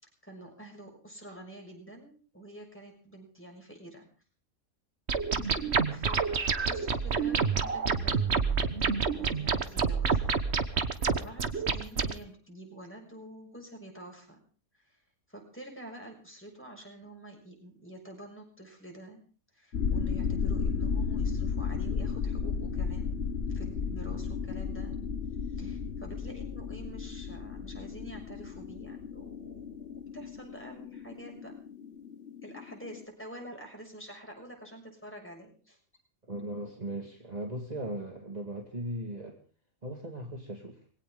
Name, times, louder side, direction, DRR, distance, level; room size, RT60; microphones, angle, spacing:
voice 1, 0.2-4.1 5.4-10.4 10.6-14.4 14.8-15.0 15.3-19.2 19.5-23.2 23.5-24.9 25.5-31.5 32.4-35.8, right 1 dB, 10° left, 0 dB, 6.5 m, -48 dB
sound 1, 5.1-12.1, right 5 dB, 50° right, 1.5 m, -28 dB
sound 2, 19.7-33.0, left 5 dB, 50° left, 1.2 m, -34 dB
voice 2, 36.3-39.4 39.8-40.8, right 1 dB, 30° right, 2 dB, 2.2 m, -38 dB
21.5 x 17.5 x 3.8 m, 0.40 s
omnidirectional pair, 1.5 m